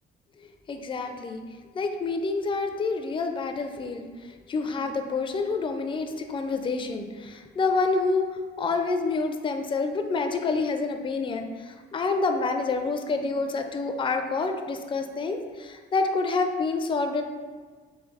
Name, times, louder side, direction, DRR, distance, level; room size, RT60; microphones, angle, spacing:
voice 1, 0.7-1.4 1.8-4.0 4.5-17.2, left 3 dB, 25° left, 6 dB, 0.4 m, -28 dB
3.3 x 3.2 x 3.4 m, 1.5 s
cardioid pair, 90°, 20 cm